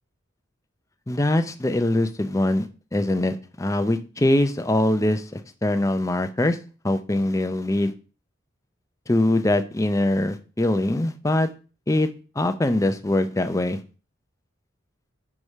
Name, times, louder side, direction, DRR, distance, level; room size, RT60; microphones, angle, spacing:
voice 1, 1.1-6.6 6.8-7.9 9.1-11.5 11.9-12.1 12.4-13.8, left 1 dB, 15° left, 9 dB, 0.5 m, -23 dB
4.9 x 4.7 x 5.4 m, 0.36 s
head